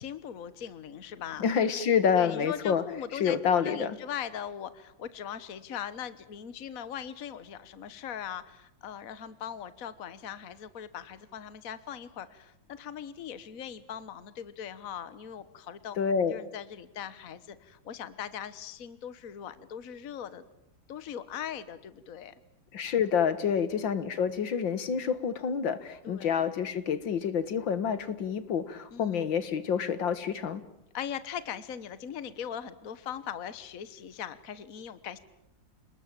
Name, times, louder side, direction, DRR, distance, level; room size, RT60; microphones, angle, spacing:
voice 1, 0.0-1.4 2.1-16.0 16.3-20.4 20.9-22.3 26.0-26.4 28.9-29.3 30.9-35.2, left 9 dB, 50° left, 14 dB, 1.6 m, -40 dB
voice 2, 1.4-2.8 3.2-4.0 16.0-16.3 22.7-30.6, left 7 dB, 80° left, 13 dB, 2.2 m, -28 dB
29.5 x 20.0 x 9.0 m, 0.81 s
omnidirectional pair, 2.1 m